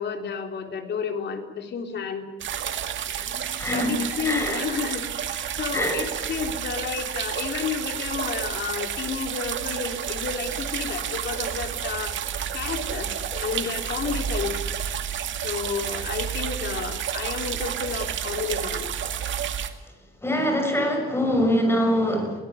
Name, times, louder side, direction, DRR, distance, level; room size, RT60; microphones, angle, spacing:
voice 1, 0.0-2.3 3.7-12.1 12.5-14.6 15.4-18.9, left 6 dB, 55° left, 6 dB, 3.6 m, -31 dB
sound 1, 2.4-19.7, right 9 dB, 65° right, 2.1 m, -30 dB
voice 2, 3.3-3.9 4.2-4.6 5.7-6.0 20.2-22.4, equal, 10° left, 4 dB, 6.6 m, -24 dB
22.5 x 17.5 x 9.7 m, 1.1 s
cardioid pair, 135°, 21 cm